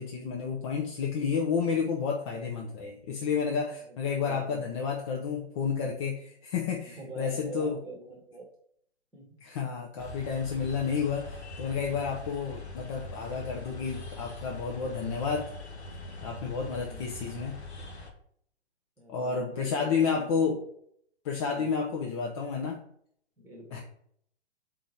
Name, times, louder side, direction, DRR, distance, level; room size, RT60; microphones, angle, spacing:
voice 1, 0.0-7.8 9.4-15.5 16.2-17.6 19.1-20.6 21.2-22.8 23.7-23.8, left 6 dB, 30° left, 0 dB, 0.5 m, -31 dB
voice 2, 3.9-4.6 6.8-8.5 9.1-9.3 16.1-16.3 16.8-17.0 19.0-20.4 21.5-21.7 23.4-23.8, right 1 dB, 5° right, -2 dB, 1.1 m, -45 dB
sound 1, 10.0-18.1, left 2 dB, 90° left, 1.1 m, -42 dB
3.9 x 2.9 x 4.0 m, 0.66 s
figure-of-eight pair, 125°, 33 cm